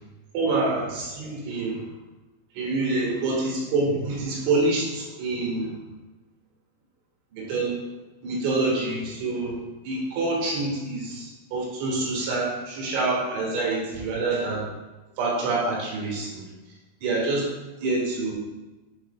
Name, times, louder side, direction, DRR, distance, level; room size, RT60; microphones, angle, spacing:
voice 1, 0.3-1.9 2.6-5.8 7.3-7.7 8.2-9.6 9.8-14.7 15.2-16.4 17.0-17.5 17.8-18.3, right 3 dB, 75° right, -3 dB, 3.8 m, -26 dB
8.6 x 5.9 x 2.2 m, 1.1 s
omnidirectional pair, 5.6 m